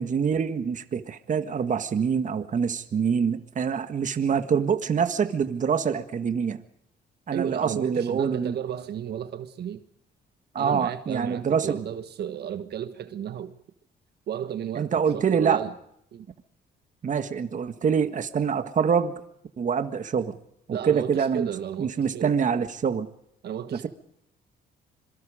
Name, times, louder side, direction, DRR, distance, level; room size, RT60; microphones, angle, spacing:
voice 1, 0.0-6.6 7.3-8.5 10.6-11.8 14.8-15.6 17.0-19.1 19.6-20.4 20.7-21.5 21.8-23.1 23.7-23.9, right 6 dB, 45° right, 1.7 m, -25 dB
voice 2, 7.3-9.8 10.6-13.5 14.3-15.7 16.1-16.3 20.7-22.3 23.4-23.9, right 9 dB, 65° right, 1.4 m, -33 dB
26.0 x 23.5 x 5.0 m
cardioid pair, 105°, 18 cm